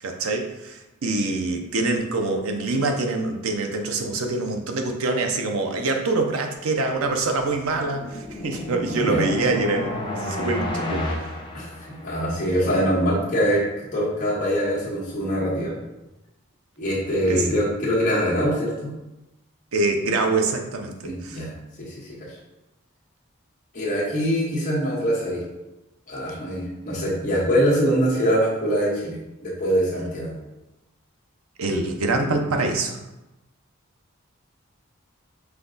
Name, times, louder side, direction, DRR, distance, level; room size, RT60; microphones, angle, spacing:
voice 1, 0.0-11.3 17.3-17.5 19.7-21.4 31.6-33.0, right 3 dB, 90° right, 4 dB, 0.6 m, -25 dB
sound 1, 7.5-12.4, left 1 dB, 25° left, 0.6 m, -31 dB
voice 2, 12.0-13.6 13.9-15.7 16.8-18.9 21.0-21.5 21.8-22.0 23.7-25.4 26.1-29.2 29.4-30.3, equal, 40° left, -6 dB, 1.5 m, -23 dB
5.7 x 2.3 x 3.9 m, 0.98 s
head